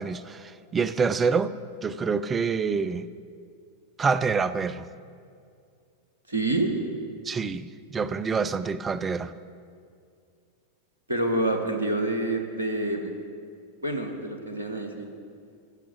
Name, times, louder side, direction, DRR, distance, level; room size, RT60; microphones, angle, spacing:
voice 1, 0.0-1.5 1.8-3.1 4.0-4.9 7.2-9.3, right 5 dB, 20° right, 0.4 m, -27 dB
voice 2, 6.3-6.7 11.1-13.1 13.8-15.1, right 2 dB, 75° right, 1.4 m, -27 dB
14.5 x 6.1 x 7.3 m
figure-of-eight pair, 90°, 0 cm